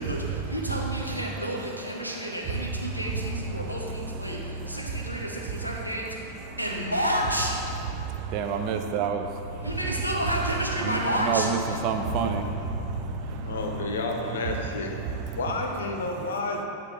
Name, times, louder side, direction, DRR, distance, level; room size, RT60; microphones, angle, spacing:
voice 1, 0.0-7.8 9.6-11.8, equal, 90° right, -2 dB, 0.7 m, -30 dB
sound 1, 2.4-14.9, equal, ahead, 1.4 m, -39 dB
voice 2, 8.0-9.7 10.9-11.0 11.3-11.6 11.8-13.5, right 6 dB, 40° right, 5 dB, 0.4 m, -29 dB
voice 3, 13.4-14.9 15.3-16.6, left 3 dB, 65° left, 2 dB, 0.6 m, -30 dB
8.9 x 3.0 x 3.7 m, 2.7 s
figure-of-eight pair, 90°, 0 cm